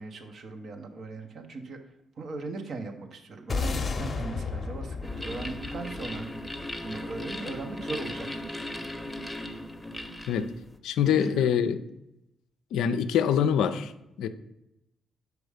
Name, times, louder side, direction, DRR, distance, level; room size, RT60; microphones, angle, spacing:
voice 1, 0.0-1.8 2.2-6.2 6.5-8.6 11.0-11.5, right 3 dB, 60° right, 5 dB, 1.0 m, -39 dB
sound 1, 3.5-7.9, left 4 dB, 45° left, 0.7 m, -34 dB
sound 2, 5.0-10.8, left 1 dB, 5° left, 0.9 m, -37 dB
voice 2, 10.8-11.8 12.7-13.9 14.2-14.3, left 8 dB, 75° left, 11 dB, 0.4 m, -24 dB
5.3 x 4.7 x 4.9 m, 0.87 s
hypercardioid pair, 45°, 0 cm